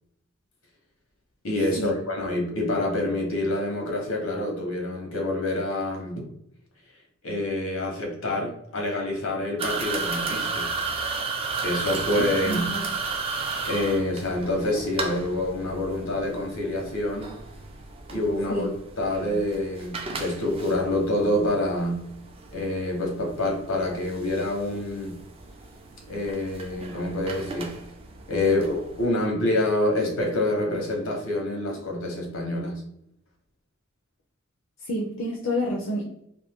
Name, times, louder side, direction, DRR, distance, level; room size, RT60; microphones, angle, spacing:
voice 1, 1.4-6.2 7.2-10.7 11.6-12.7 13.6-17.3 18.1-18.7 19.0-22.0 22.5-25.2 26.1-27.7 28.3-32.8, left 1 dB, 80° left, 1 dB, 1.0 m, -27 dB
sound 1, 9.6-29.1, right 4 dB, 25° right, 0.3 m, -34 dB
voice 2, 12.4-12.8 18.5-18.7 19.3-19.4 34.8-36.0, left 1 dB, 65° left, -1 dB, 0.5 m, -29 dB
2.6 x 2.5 x 3.5 m, 0.75 s
head